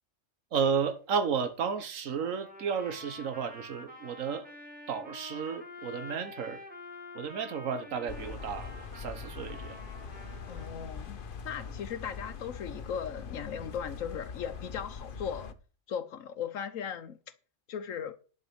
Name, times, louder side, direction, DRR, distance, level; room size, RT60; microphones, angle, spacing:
voice 1, 0.5-4.5 4.9-6.6 7.1-9.8, right 6 dB, 85° right, 1.5 m, -33 dB
Trumpet, 2.2-10.7, left 2 dB, 5° right, 3.1 m, -47 dB
sound 1, 8.1-15.5, left 5 dB, 45° left, 1.0 m, -42 dB
voice 2, 10.5-15.5 15.9-17.2 17.7-18.2, left 8 dB, 85° left, 1.3 m, -38 dB
11.0 x 5.4 x 7.9 m
omnidirectional pair, 1.3 m